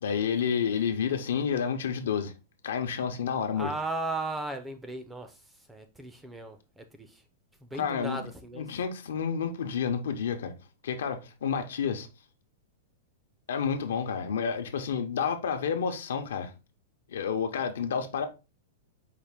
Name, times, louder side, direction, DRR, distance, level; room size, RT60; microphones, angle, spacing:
voice 1, 0.0-2.3 2.6-3.7 7.8-8.2 8.6-10.5 10.8-12.1 13.5-16.5 17.1-18.3, left 7 dB, 80° left, 0.7 m, -30 dB
voice 2, 3.5-7.2 7.6-8.6, right 2 dB, 5° right, 0.3 m, -36 dB
4.9 x 2.4 x 3.4 m
supercardioid pair, 180°, 0 cm